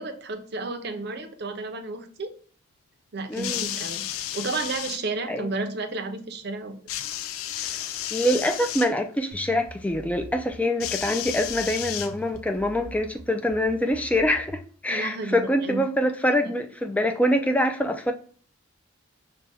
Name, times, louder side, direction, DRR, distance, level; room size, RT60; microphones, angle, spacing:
voice 1, 0.0-2.3 3.1-4.0 4.3-6.8 14.9-15.8, right 3 dB, 50° right, 0.6 m, -32 dB
sound 1, 3.3-5.0 6.9-8.9 10.8-12.5 13.5-13.6, left 12 dB, 85° left, 0.3 m, -32 dB
voice 2, 3.3-3.7 5.3-5.5 7.7-18.1, left 1 dB, 5° left, 0.3 m, -25 dB
sound 2, 9.3-14.7, left 1 dB, 35° left, 1.0 m, -44 dB
5.3 x 2.3 x 3.3 m
head